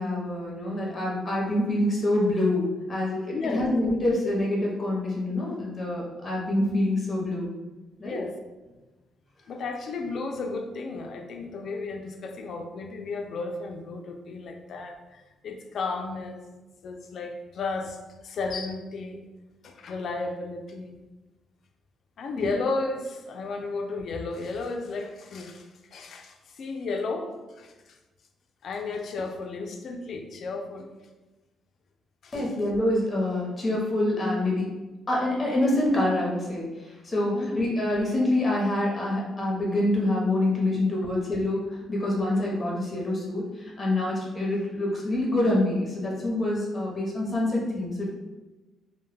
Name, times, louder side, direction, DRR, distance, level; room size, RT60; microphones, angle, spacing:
voice 1, 0.0-7.5 8.0-8.2 22.4-22.5 32.3-34.6 35.1-48.1, left 1 dB, 30° left, -3 dB, 0.7 m, -26 dB
voice 2, 3.3-3.7 8.0-8.4 9.5-16.4 16.8-19.2 19.6-20.9 22.2-28.0 28.6-30.9 32.2-32.5 37.3-37.7, left 3 dB, 60° left, 4 dB, 0.3 m, -33 dB
2.1 x 2.1 x 3.2 m, 1.1 s
cardioid pair, 90°, 0 cm